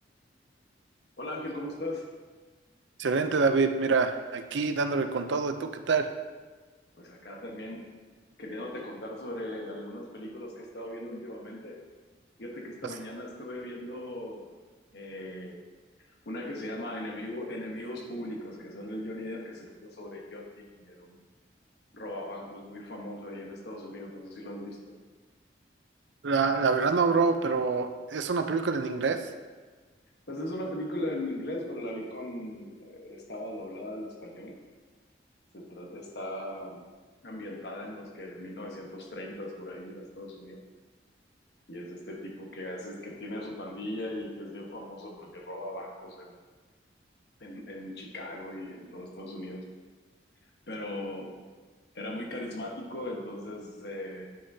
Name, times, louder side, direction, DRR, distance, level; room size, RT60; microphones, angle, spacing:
voice 1, 1.2-2.1 7.0-7.9 8.4-11.8 12.4-14.5 14.9-15.6 16.2-21.2 21.9-24.8 30.3-34.6 35.5-36.8 37.2-40.6 41.7-46.3 47.4-49.6 50.7-51.3 51.9-54.3, left 1 dB, 70° left, 0 dB, 1.2 m, -38 dB
voice 2, 3.0-6.1 26.2-29.2, right 4 dB, 90° right, 8 dB, 0.5 m, -26 dB
9.6 x 6.4 x 2.7 m, 1.3 s
head